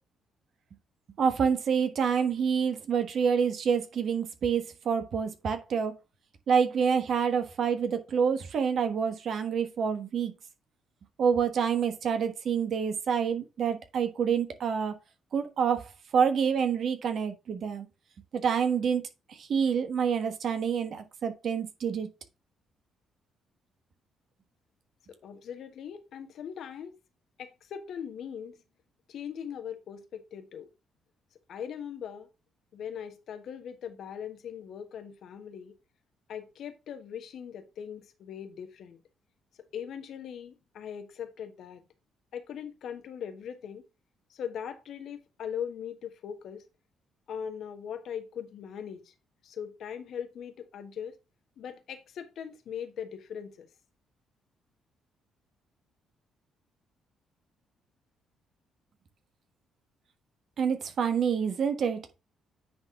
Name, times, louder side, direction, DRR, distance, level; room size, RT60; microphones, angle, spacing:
voice 1, 1.2-5.9 6.5-10.3 11.2-14.9 15.3-17.9 18.3-19.0 19.3-22.1 60.6-62.0, right 6 dB, 55° right, 1.3 m, -27 dB
voice 2, 25.2-26.9 27.4-28.6 29.1-30.7 31.5-32.3 32.7-35.7 36.3-39.0 39.7-41.8 42.3-43.8 44.3-46.6 47.3-49.1 49.4-51.2 51.6-53.7, left 8 dB, 60° left, 1.3 m, -40 dB
9.6 x 4.0 x 3.8 m
hypercardioid pair, 45°, 0 cm